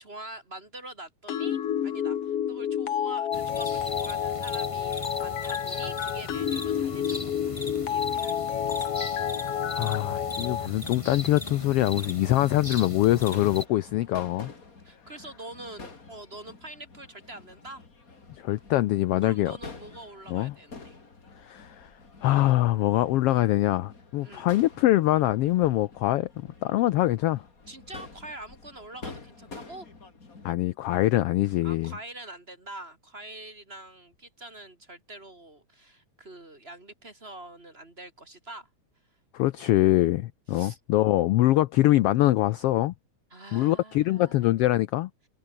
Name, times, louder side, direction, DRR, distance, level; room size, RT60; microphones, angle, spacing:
voice 1, 0.0-9.1 14.8-17.8 19.2-21.0 24.2-24.5 27.7-29.9 31.6-38.7 40.5-40.8 43.3-44.4, right 1 dB, 20° right, 2.4 m, -45 dB
sound 1, 1.3-10.7, left 9 dB, 55° left, 2.4 m, -30 dB
sound 2, 3.3-13.7, left 2 dB, 10° left, 1.9 m, -38 dB
voice 2, 9.7-14.5 18.4-19.5 20.3-20.5 21.4-21.9 22.2-27.4 30.4-31.9 39.3-42.9 43.5-45.1, left 15 dB, 85° left, 1.3 m, -24 dB
Crowd / Fireworks, 13.2-30.5, left 4 dB, 30° left, 3.3 m, -48 dB
omnidirectional pair, 3.4 m